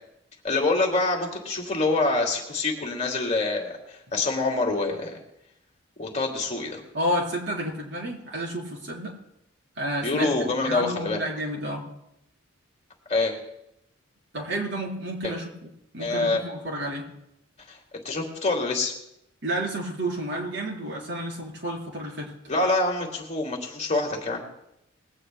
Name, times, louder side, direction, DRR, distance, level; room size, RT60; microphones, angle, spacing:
voice 1, 0.4-5.1 6.0-6.8 10.0-11.2 13.1-13.3 15.2-15.3 16.0-16.4 17.7-17.8 18.0-18.9 22.5-24.5, left 3 dB, 35° left, 1 dB, 2.2 m, -26 dB
voice 2, 6.9-9.1 9.8-10.3 10.6-11.9 14.3-15.5 15.9-17.1 19.4-22.3, right 1 dB, 60° right, 0 dB, 4.1 m, -30 dB
21.0 x 16.5 x 2.2 m, 0.80 s
head